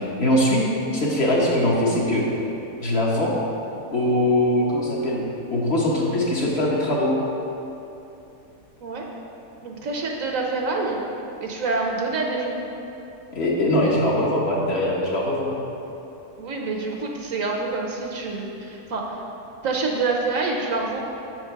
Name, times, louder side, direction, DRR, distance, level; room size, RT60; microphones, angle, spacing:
voice 1, 0.2-0.7 0.9-2.2 2.8-3.3 3.9-5.2 5.5-7.1 13.3-15.5, left 1 dB, 45° left, -4 dB, 1.1 m, -21 dB
voice 2, 9.6-11.0 11.4-12.6 16.4-19.2 19.6-21.0, right 3 dB, 65° right, 0 dB, 1.1 m, -26 dB
7.2 x 4.6 x 5.7 m, 2.9 s
omnidirectional pair, 1.7 m